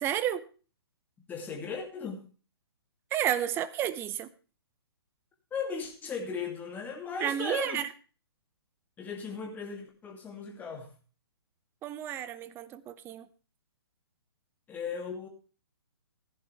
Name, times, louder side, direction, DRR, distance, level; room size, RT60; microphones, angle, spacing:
voice 1, 0.0-0.4 3.1-4.3 7.2-7.9 11.8-13.3, right 11 dB, 15° right, 15 dB, 0.7 m, -31 dB
voice 2, 1.3-2.3 5.5-7.8 9.0-10.9 14.7-15.3, left 5 dB, 15° left, 2 dB, 2.6 m, -37 dB
15.5 x 10.5 x 3.4 m, 0.36 s
figure-of-eight pair, 125°, 13 cm